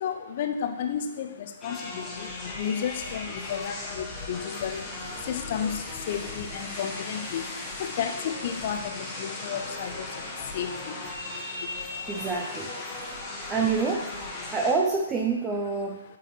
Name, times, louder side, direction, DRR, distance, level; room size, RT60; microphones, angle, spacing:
voice 1, 0.0-1.3 1.6-4.8 5.3-7.4 7.8-10.0 10.5-11.0, left 8 dB, 40° left, 6 dB, 0.6 m, -32 dB
sound 1, 1.6-14.7, left 2 dB, 15° left, 1.0 m, -37 dB
voice 2, 12.1-12.7 13.5-14.1 14.5-16.0, right 4 dB, 15° right, 1 dB, 0.4 m, -27 dB
8.2 x 4.0 x 2.9 m, 0.94 s
figure-of-eight pair, 125°, 0 cm